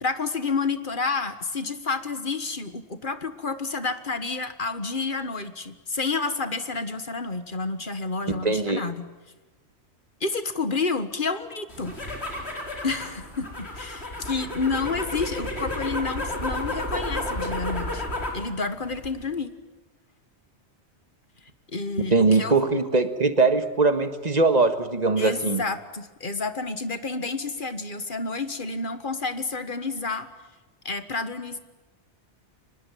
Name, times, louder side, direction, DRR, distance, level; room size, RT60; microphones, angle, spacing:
voice 1, 0.0-9.1 10.2-12.0 12.8-18.0 18.3-19.5 21.7-22.7 25.2-30.3 30.9-31.6, left 4 dB, 45° left, 11 dB, 1.7 m, -30 dB
voice 2, 8.3-8.8 22.1-25.6, right 3 dB, 35° right, 9 dB, 1.8 m, -21 dB
sound 1, 11.7-18.4 18.8-19.3, left 1 dB, 65° left, 5.0 m, -32 dB
25.0 x 20.5 x 9.2 m, 1.2 s
omnidirectional pair, 1.2 m